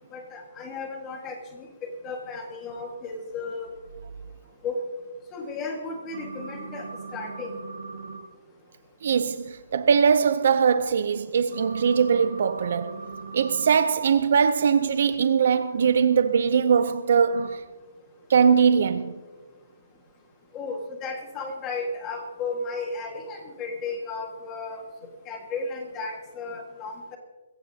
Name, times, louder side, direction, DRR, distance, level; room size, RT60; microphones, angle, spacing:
voice 1, 0.1-1.7 2.0-3.7 4.6-4.8 5.3-7.5 20.5-24.8 25.3-27.2, left 3 dB, 15° left, 1.6 m, -34 dB
sound 1, 6.1-8.2 11.5-13.8 17.3-17.5, right 4 dB, 70° right, 5.4 m, -39 dB
voice 2, 9.0-13.0 13.3-17.6 18.3-19.2, right 6 dB, 45° right, 0.5 m, -21 dB
22.0 x 15.5 x 2.8 m
hypercardioid pair, 175°, 0 cm